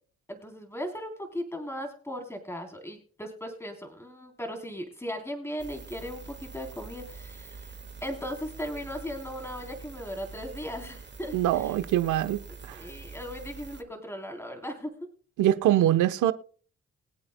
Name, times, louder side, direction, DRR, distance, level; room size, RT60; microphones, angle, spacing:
voice 1, 0.3-11.7 12.7-14.9, equal, 10° left, 3.5 m, -37 dB
sound 1, 5.6-13.8, right 4 dB, 35° right, 2.0 m, -45 dB
voice 2, 11.3-12.8 15.4-16.3, right 12 dB, 80° right, 1.0 m, -24 dB
22.5 x 8.6 x 2.2 m
hypercardioid pair, 50°, 30 cm